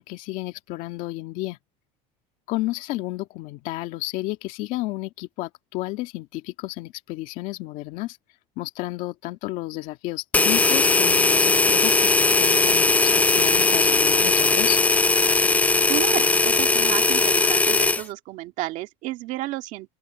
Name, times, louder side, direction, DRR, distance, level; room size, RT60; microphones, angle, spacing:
voice 1, 0.0-1.6 2.5-8.2 8.6-14.8, left 18 dB, 65° left, 2.0 m, -32 dB
sound 1, 10.3-18.0, left 3 dB, 10° left, 0.5 m, -19 dB
voice 2, 15.9-19.9, right 17 dB, 60° right, 2.0 m, -31 dB
open air
cardioid pair, 140°, 15 cm